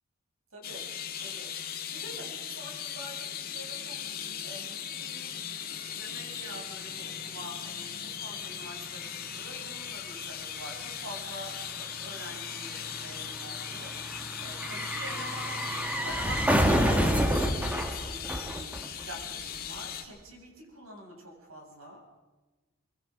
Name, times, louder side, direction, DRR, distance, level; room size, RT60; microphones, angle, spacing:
voice 1, 0.5-0.8 1.2-1.5 1.9-4.0 4.4-5.4 5.8-14.0 14.4-15.8 16.0-18.7 19.0-22.1, equal, 65° right, 0 dB, 8.0 m, -46 dB
sound 1, 0.6-20.0, left 8 dB, 40° left, 2.3 m, -39 dB
sound 2, 8.6-8.7 8.8-19.2 19.5-19.6, equal, 5° right, 1.5 m, -30 dB
24.5 x 23.0 x 5.3 m, 1.2 s
head